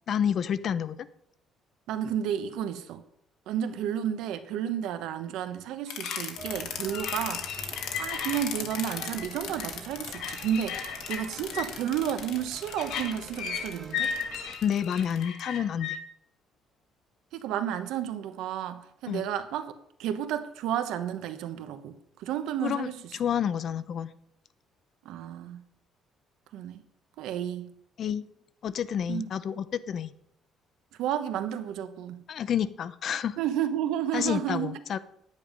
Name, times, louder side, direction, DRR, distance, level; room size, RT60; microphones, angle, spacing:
voice 1, 0.1-1.1 14.6-16.0 19.1-19.3 22.6-24.1 28.0-28.3 28.6-30.1 32.3-33.4 34.1-35.0, left 8 dB, 50° left, 0.6 m, -29 dB
voice 2, 1.9-3.0 3.5-10.8 11.1-14.2 17.3-19.7 20.0-22.9 25.0-25.6 26.5-26.8 27.2-27.7 29.1-29.3 31.0-32.2 33.4-34.8, right 10 dB, 85° right, 1.1 m, -32 dB
sound 1, 5.9-16.0, left 7 dB, 75° left, 1.7 m, -35 dB
sound 2, 6.4-14.6, right 4 dB, 35° right, 1.2 m, -47 dB
10.5 x 9.6 x 5.3 m
cardioid pair, 145°, 0 cm